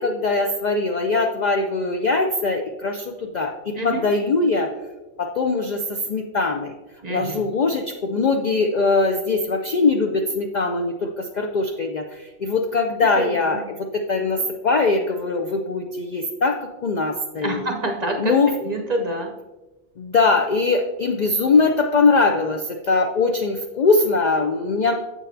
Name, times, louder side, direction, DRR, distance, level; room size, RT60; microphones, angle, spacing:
voice 1, 0.0-4.7 5.2-6.7 7.1-17.6 18.2-18.5 20.0-24.9, left 3 dB, 60° left, 3 dB, 0.4 m, -21 dB
voice 2, 7.0-7.4 13.2-13.6 17.4-18.3 18.6-19.3, right 1 dB, 45° right, 3 dB, 0.6 m, -27 dB
7.5 x 6.4 x 2.6 m, 1.1 s
omnidirectional pair, 1.2 m